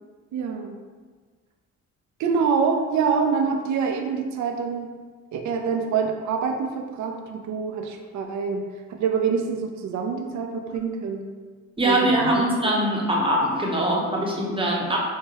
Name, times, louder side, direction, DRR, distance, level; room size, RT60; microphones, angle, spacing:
voice 1, 0.3-0.8 2.2-5.0 5.3-11.3 11.8-12.4, right 5 dB, 70° right, 3 dB, 0.5 m, -26 dB
voice 2, 11.8-15.0, right 1 dB, 15° right, -3 dB, 0.8 m, -22 dB
4.7 x 2.1 x 2.8 m, 1.5 s
cardioid pair, 90°, 30 cm